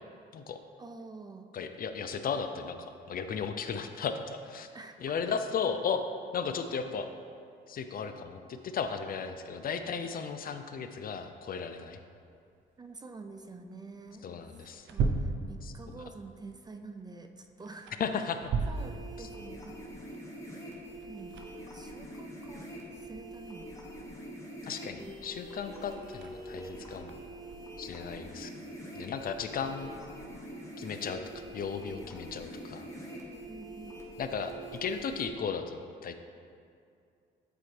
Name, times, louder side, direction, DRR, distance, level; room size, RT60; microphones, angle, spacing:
voice 1, 0.8-1.5 4.7-5.0 12.8-14.3 14.9-18.4 18.7-19.8 21.1-21.4 21.7-23.7 25.0-25.1 32.9-34.0, right 3 dB, 20° right, 6 dB, 0.3 m, -48 dB
voice 2, 1.5-4.7 5.0-6.0 6.3-7.1 7.7-12.0 14.2-14.9 15.6-15.7 18.0-18.5 19.2-19.3 24.6-27.1 27.8-28.5 29.0-30.0 30.8-32.9 34.2-34.5 34.8-36.2, left 6 dB, 45° left, 8 dB, 0.4 m, -35 dB
sound 1, 12.2-29.5, right 4 dB, 70° right, 0.6 m, -40 dB
sound 2, 18.6-35.3, right 1 dB, 15° left, 1.3 m, -45 dB
8.2 x 4.4 x 3.2 m, 2.4 s
cardioid pair, 90°, 20 cm